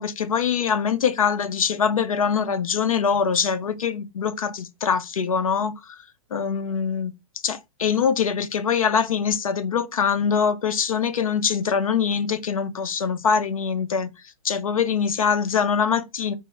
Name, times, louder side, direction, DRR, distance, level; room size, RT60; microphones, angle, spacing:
voice 1, 0.0-5.9 6.3-7.1 7.4-14.1 14.4-16.3, left 6 dB, 85° left, 0.7 m, -23 dB
3.7 x 2.0 x 3.8 m
hypercardioid pair, 125°, 17 cm